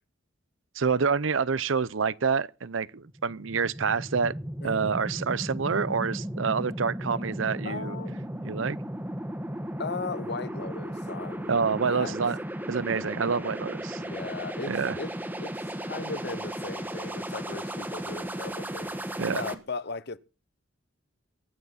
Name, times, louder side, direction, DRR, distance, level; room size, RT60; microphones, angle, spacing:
voice 1, 0.8-4.3 4.6-8.0 8.4-8.8 11.5-12.4 12.7-14.0 14.7-15.0 19.2-19.4, right 5 dB, 80° right, 0.7 m, -27 dB
sound 1, 3.0-19.5, right 1 dB, 10° right, 1.5 m, -35 dB
voice 2, 4.6-5.0 7.6-8.2 9.8-12.1 14.0-15.1 15.4-19.0 19.3-20.2, left 4 dB, 55° left, 0.9 m, -37 dB
23.0 x 9.4 x 4.2 m
head